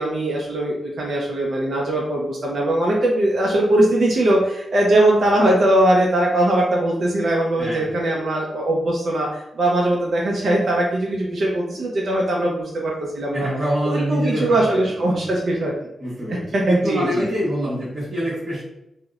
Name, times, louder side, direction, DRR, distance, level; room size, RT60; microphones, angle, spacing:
voice 1, 0.0-13.5 13.8-15.7 16.5-17.3, right 1 dB, 60° right, -2 dB, 0.4 m, -20 dB
voice 2, 13.3-14.5 15.0-15.2 16.0-18.6, equal, 45° right, -9 dB, 1.1 m, -25 dB
2.8 x 2.0 x 2.4 m, 0.85 s
wide cardioid pair, 130°, 0 cm